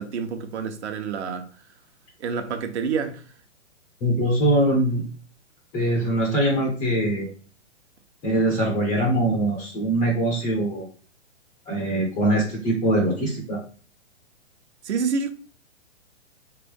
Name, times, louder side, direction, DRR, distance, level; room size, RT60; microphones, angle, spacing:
voice 1, 0.0-1.5 2.2-3.2 14.8-15.3, right 5 dB, 65° right, 0.9 m, -28 dB
voice 2, 4.0-5.1 5.7-7.3 8.2-10.8 11.7-13.6, right 1 dB, 10° left, 0.3 m, -22 dB
3.9 x 3.3 x 3.6 m
hypercardioid pair, 135°, 36 cm